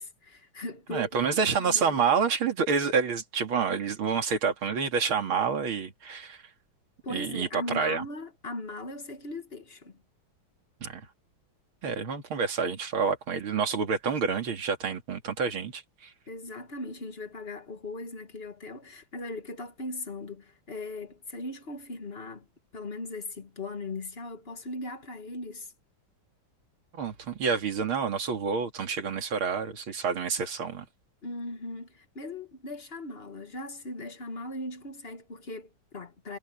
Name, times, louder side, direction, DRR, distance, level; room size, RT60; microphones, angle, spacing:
voice 1, 0.0-1.1 1.5-2.0 7.0-10.0 16.3-22.5 22.7-25.7 31.2-36.4, left 2 dB, 30° left, 1.6 m, -39 dB
voice 2, 0.9-6.4 7.1-8.1 10.8-11.0 11.8-16.1 26.9-30.8, right 6 dB, 90° right, 3.1 m, -28 dB
omnidirectional pair, 2.2 m